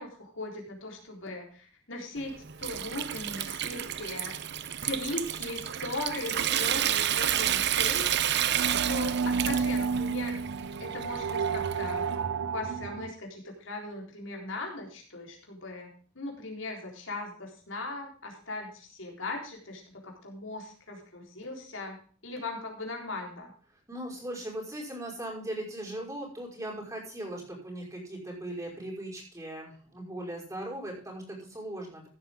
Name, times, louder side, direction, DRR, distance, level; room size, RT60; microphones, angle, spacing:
voice 1, 0.0-4.4 4.8-8.4 8.8-10.4 10.8-12.0 12.5-23.5, left 2 dB, 70° left, 1 dB, 4.0 m, -39 dB
Water tap faucet / Sink (filling or washing) / Trickle dribble, 2.2-12.1, right 11 dB, 60° right, 0.7 m, -31 dB
voice 2, 7.3-7.8 23.9-32.1, right 1 dB, 15° right, -1 dB, 5.3 m, -39 dB
sound 1, 7.3-13.1, right 5 dB, 90° right, 0.8 m, -32 dB
15.0 x 9.2 x 3.7 m, 0.42 s
head